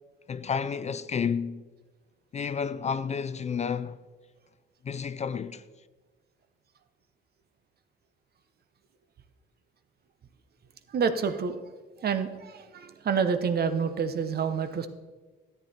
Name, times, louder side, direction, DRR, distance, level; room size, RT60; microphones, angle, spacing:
voice 1, 0.3-1.6 2.3-4.0 4.8-5.6, left 6 dB, 35° left, 0.4 m, -31 dB
voice 2, 10.9-11.6 12.0-14.9, right 6 dB, 50° right, 0.9 m, -28 dB
13.0 x 8.8 x 4.3 m
cardioid pair, 90°, 20 cm